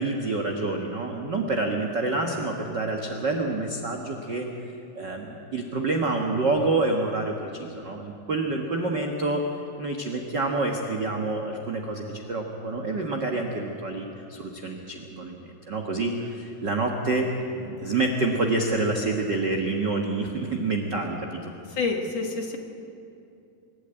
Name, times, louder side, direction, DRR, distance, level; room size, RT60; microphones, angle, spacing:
voice 1, 0.0-4.5 4.9-9.4 9.8-17.3 17.5-21.4, right 3 dB, 65° right, 1 dB, 1.0 m, -27 dB
voice 2, 21.7-22.6, left 4 dB, 55° left, 2 dB, 2.3 m, -28 dB
26.0 x 12.5 x 9.0 m, 2.6 s
omnidirectional pair, 4.2 m